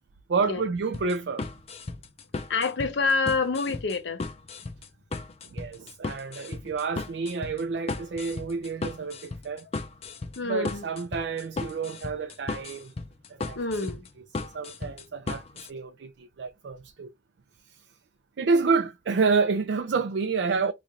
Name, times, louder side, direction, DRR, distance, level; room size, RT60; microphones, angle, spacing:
voice 1, 0.3-1.4 5.5-9.7 10.4-12.9 13.3-13.6 14.4-17.1 18.4-20.7, right 4 dB, 75° right, 0.4 m, -29 dB
sound 1, 0.9-15.7, left 3 dB, 35° left, 0.5 m, -36 dB
voice 2, 2.5-4.2 10.4-10.8 13.6-14.1, left 4 dB, 85° left, 0.7 m, -27 dB
3.0 x 2.5 x 4.0 m
head